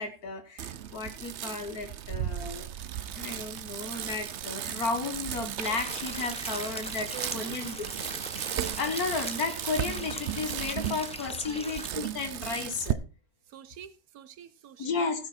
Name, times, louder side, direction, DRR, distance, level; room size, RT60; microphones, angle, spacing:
voice 1, 0.0-2.7 3.1-8.1 8.7-13.0 14.8-15.3, left 4 dB, 80° left, 2.1 m, -33 dB
Bicycle, 0.6-12.9, right 10 dB, 60° right, 0.9 m, -35 dB
sound 1, 5.6-11.9, left 1 dB, 5° left, 0.8 m, -41 dB
voice 2, 7.1-7.6 11.5-11.8 13.5-15.0, right 8 dB, 80° right, 1.3 m, -46 dB
16.0 x 6.5 x 4.3 m
omnidirectional pair, 1.6 m